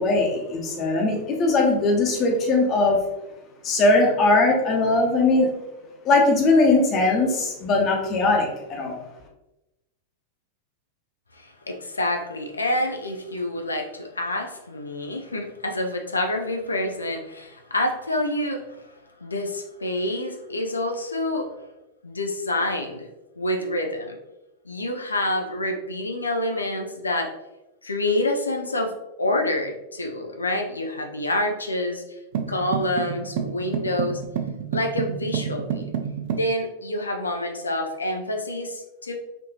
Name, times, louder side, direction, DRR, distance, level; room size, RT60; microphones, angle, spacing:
voice 1, 0.0-3.0 3.6-5.5 6.0-9.0, left 2 dB, 35° left, 0 dB, 0.9 m, -20 dB
voice 2, 11.3-18.9 19.2-21.5 22.0-23.1 23.4-24.2 24.7-27.3 27.8-32.2 32.5-34.2 34.7-35.9 36.3-39.1, left 1 dB, 80° left, 3 dB, 0.4 m, -27 dB
sound 1, 32.3-36.5, right 8 dB, 50° right, 0.4 m, -29 dB
4.2 x 2.7 x 2.9 m, 0.98 s
figure-of-eight pair, 90°, 0 cm